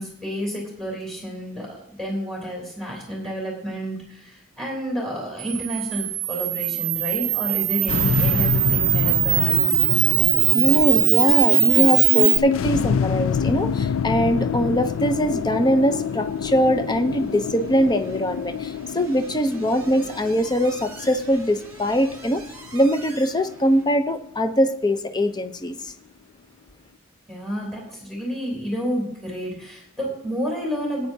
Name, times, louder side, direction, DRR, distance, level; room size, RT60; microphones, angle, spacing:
voice 1, 0.0-9.6 27.3-31.1, equal, ahead, 3.3 m, -30 dB
Camera, 5.4-12.4, right 19 dB, 80° right, 0.4 m, -20 dB
sound 1, 7.9-24.3, left 6 dB, 90° left, 0.3 m, -27 dB
voice 2, 10.5-22.4 22.7-25.9, equal, 20° left, 0.6 m, -22 dB
sound 2, 14.8-23.9, right 2 dB, 15° right, 2.5 m, -46 dB
16.5 x 9.2 x 2.8 m
head